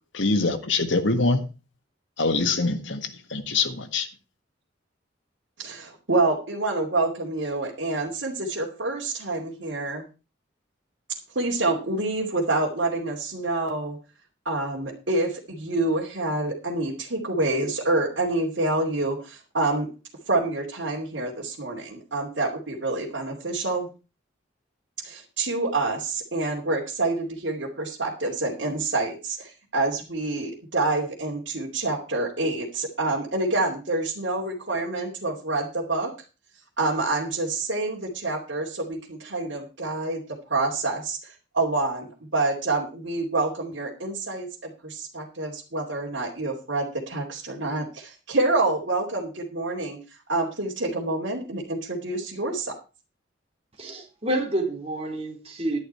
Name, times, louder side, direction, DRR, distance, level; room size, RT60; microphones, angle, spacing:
voice 1, 0.1-1.4 2.2-4.1, left 3 dB, 75° left, 1.8 m, -24 dB
voice 2, 5.6-10.0 11.3-14.0 14.4-19.9 20.3-23.9 25.0-36.1 36.8-40.2 40.5-50.0 50.3-52.7, right 2 dB, 70° right, 2.8 m, -27 dB
voice 3, 53.8-55.8, right 1 dB, 30° right, 4.1 m, -28 dB
11.5 x 10.5 x 4.5 m
head